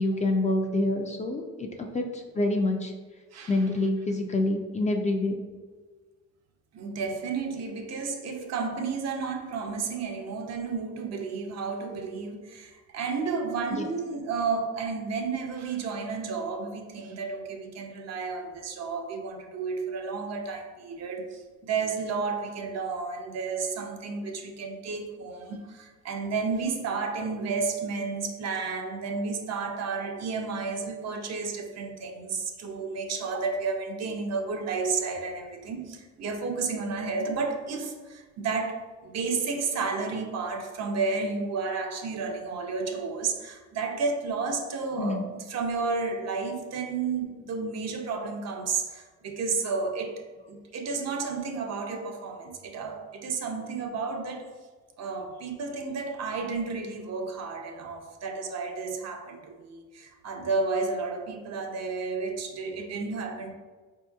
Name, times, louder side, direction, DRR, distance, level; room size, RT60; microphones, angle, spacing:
voice 1, 0.0-1.7 1.9-2.9 3.5-5.4 13.7-13.9 45.0-45.3, left 2 dB, 25° left, 3 dB, 0.3 m, -27 dB
voice 2, 3.3-3.7 6.7-50.2 50.5-54.5 55.0-63.5, right 4 dB, 60° right, 4 dB, 0.6 m, -32 dB
4.3 x 2.8 x 2.3 m, 1.4 s
cardioid pair, 90°, 30 cm